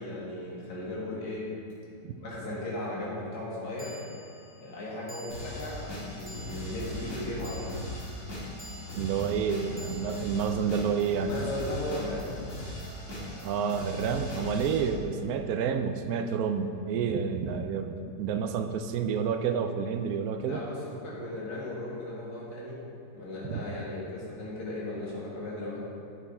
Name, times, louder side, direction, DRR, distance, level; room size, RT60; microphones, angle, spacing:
voice 1, 0.0-1.5 2.2-4.0 4.6-5.8 6.1-7.8 11.2-12.3 20.4-22.8 23.1-25.8, left 1 dB, 65° left, -6 dB, 2.3 m, -36 dB
sound 1, 1.7-1.8 3.8-12.2, right 1 dB, 25° right, 1.0 m, -52 dB
sound 2, 5.3-14.9, left 1 dB, 45° left, 2.2 m, -39 dB
voice 2, 9.0-11.3 13.4-20.6 23.5-23.6, right 6 dB, 70° right, 7 dB, 0.9 m, -29 dB
8.1 x 6.8 x 4.2 m, 2.6 s
omnidirectional pair, 1.8 m